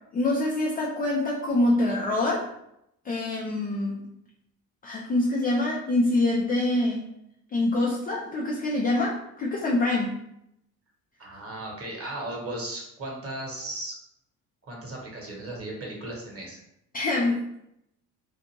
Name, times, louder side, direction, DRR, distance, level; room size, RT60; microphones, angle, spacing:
voice 1, 0.1-2.5 3.0-4.1 4.8-7.1 7.5-10.2 16.9-17.6, left 2 dB, 20° left, -3 dB, 0.3 m, -25 dB
voice 2, 11.2-13.9 14.6-16.6, right 1 dB, 30° right, -2 dB, 1.1 m, -36 dB
2.5 x 2.5 x 2.8 m, 0.79 s
figure-of-eight pair, 55°, 50 cm